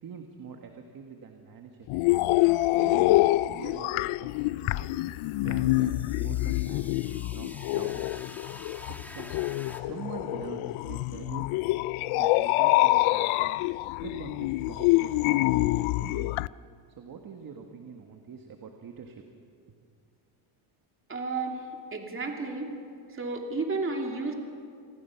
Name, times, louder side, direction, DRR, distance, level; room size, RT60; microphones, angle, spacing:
voice 1, 0.0-1.9 2.7-5.0 5.4-8.2 8.9-9.3 9.7-11.5 12.1-16.4 17.0-19.2 19.6-19.8, right 6 dB, 40° right, 4 dB, 1.7 m, -44 dB
sound 1, 1.9-16.5, left 19 dB, 75° left, 0.5 m, -26 dB
sound 2, 4.3-9.8, left 1 dB, 5° left, 1.4 m, -49 dB
voice 2, 21.1-22.7 23.1-24.3, right 3 dB, 25° right, 2 dB, 2.7 m, -32 dB
28.5 x 19.5 x 5.9 m, 2.3 s
cardioid pair, 140°, 50 cm